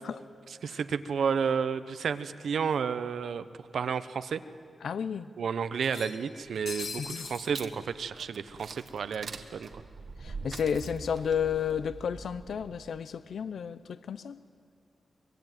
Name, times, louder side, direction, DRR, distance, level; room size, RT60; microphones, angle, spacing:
voice 1, 0.6-3.4 3.7-4.4 5.4-9.7, right 6 dB, 80° right, 0.9 m, -31 dB
sound 1, 2.4-2.5 2.8-2.9 3.9-4.0 4.4-4.5 5.8-7.5, left 4 dB, 55° left, 1.4 m, -41 dB
voice 2, 4.8-5.3 7.0-7.3 10.2-14.4, left 7 dB, 85° left, 0.6 m, -32 dB
sound 2, 6.4-13.0, right 4 dB, 55° right, 1.6 m, -44 dB
24.5 x 22.5 x 9.2 m
wide cardioid pair, 160°, 0 cm